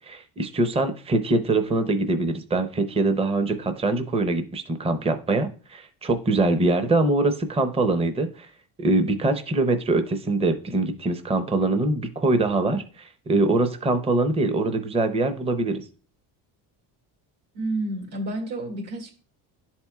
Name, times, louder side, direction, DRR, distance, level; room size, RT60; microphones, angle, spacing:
voice 1, 0.1-8.5 8.8-15.8, right 2 dB, 15° right, 0.6 m, -23 dB
voice 2, 17.5-19.1, right 2 dB, 70° right, 2.1 m, -30 dB
11.0 x 4.3 x 2.3 m
cardioid pair, 110°, 43 cm